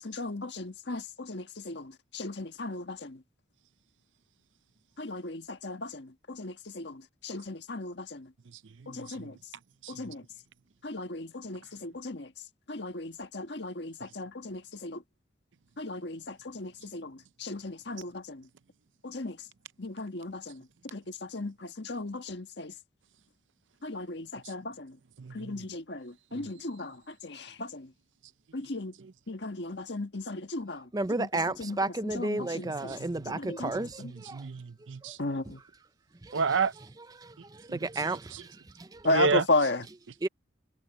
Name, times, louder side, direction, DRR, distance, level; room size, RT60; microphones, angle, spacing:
voice 1, 0.0-3.2 5.0-8.3 8.9-9.4 9.9-10.2 10.8-12.3 12.7-15.0 15.8-18.5 19.0-19.4 19.8-22.7 23.8-25.0 25.3-27.9 28.5-28.9 29.3-31.3 31.6-33.0 33.2-34.1 35.2-35.6 39.0-39.9, left 2 dB, 60° left, 1.6 m, -35 dB
voice 2, 25.2-25.5 34.0-35.2 36.3-36.7 37.7-38.2 39.1-39.4, right 5 dB, 75° right, 0.6 m, -29 dB
voice 3, 30.9-34.4 36.2-36.4 37.0-38.5 38.8-39.0 40.2-40.3, right 2 dB, 20° right, 0.5 m, -33 dB
head